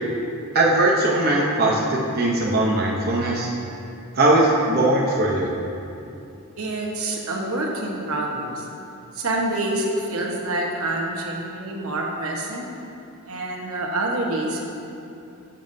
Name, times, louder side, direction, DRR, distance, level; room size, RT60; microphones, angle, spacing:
voice 1, 0.5-3.5 4.1-5.5, right 2 dB, 45° right, -3 dB, 0.8 m, -20 dB
voice 2, 6.6-8.8 9.1-12.7 13.3-14.7, right 2 dB, 80° right, -1 dB, 1.2 m, -27 dB
12.5 x 7.2 x 2.7 m, 2.7 s
head